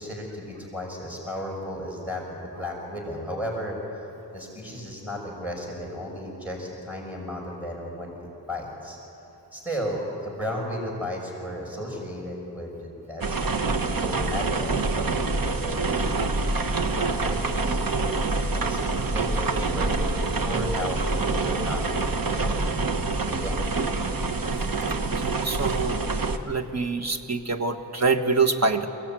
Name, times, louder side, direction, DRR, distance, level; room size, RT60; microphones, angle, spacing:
voice 1, 0.0-3.8 4.3-8.1 8.5-9.0 9.5-16.2 16.8-17.8 18.2-22.6 23.1-23.8, equal, 5° right, -1 dB, 6.2 m, -34 dB
sound 1, 13.2-26.4, right 3 dB, 55° right, 1.2 m, -26 dB
voice 2, 25.0-26.1 26.4-28.9, right 4 dB, 40° right, 5 dB, 1.4 m, -25 dB
22.5 x 17.5 x 9.1 m, 3.0 s
wide cardioid pair, 60°, 41 cm